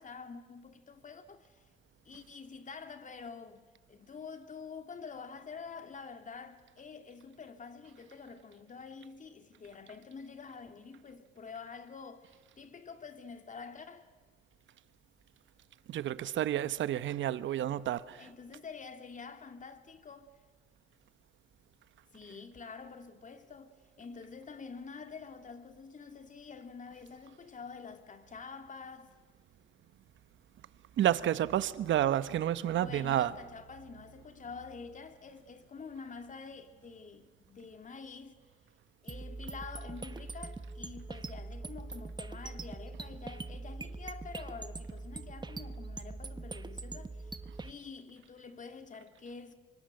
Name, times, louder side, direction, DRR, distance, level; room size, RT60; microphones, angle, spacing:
voice 1, 0.0-1.6 2.0-14.1 18.2-20.3 22.1-29.1 32.7-38.4 39.0-47.4 47.6-49.5, left 5 dB, 40° left, 2.7 m, -47 dB
voice 2, 15.9-18.3 31.0-33.3, right 11 dB, 70° right, 1.1 m, -30 dB
sound 1, 39.1-47.7, right 3 dB, 20° right, 1.2 m, -42 dB
25.0 x 24.5 x 7.8 m
cardioid pair, 90°, 20 cm